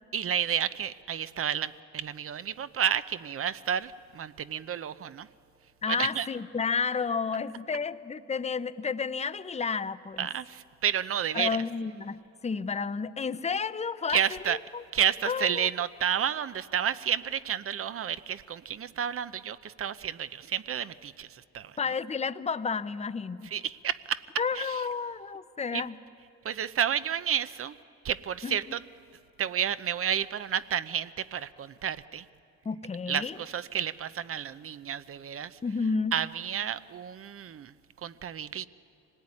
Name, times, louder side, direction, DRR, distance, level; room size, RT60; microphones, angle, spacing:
voice 1, 0.1-5.3 5.9-6.3 10.2-11.6 14.1-14.6 14.9-21.7 23.5-24.2 24.5-24.8 25.7-25.8 26.4-27.8 28.0-28.8 29.4-32.3 33.1-35.6 36.1-37.7 38.0-38.7, right 9 dB, 45° right, 15 dB, 0.7 m, -31 dB
voice 2, 5.8-10.3 11.3-14.8 15.2-15.7 21.8-23.5 24.4-26.0 28.4-28.8 32.6-33.4 35.6-36.2, left 5 dB, 20° left, 13 dB, 0.7 m, -31 dB
25.0 x 18.5 x 9.8 m, 2.8 s
cardioid pair, 90°, 30 cm